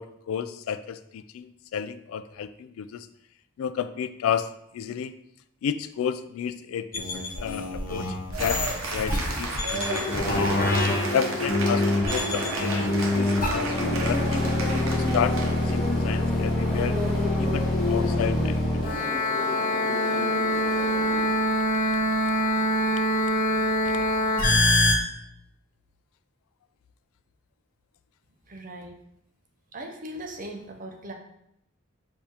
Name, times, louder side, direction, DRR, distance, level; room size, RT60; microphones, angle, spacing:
voice 1, 0.0-3.1 3.6-5.1 5.6-10.5 11.1-14.4 14.9-17.0 17.4-18.9 23.9-24.0, left 8 dB, 90° left, 14 dB, 0.3 m, -32 dB
sound 1, 6.9-24.9, left 1 dB, 45° left, 0.7 m, -25 dB
Cheering / Applause, 8.3-15.9, right 3 dB, 85° right, 0.8 m, -34 dB
sound 2, 9.9-21.3, left 2 dB, ahead, 1.4 m, -31 dB
voice 2, 28.5-29.0 29.7-31.1, right 1 dB, 40° right, 2 dB, 0.6 m, -39 dB
6.6 x 2.7 x 2.9 m, 0.76 s
head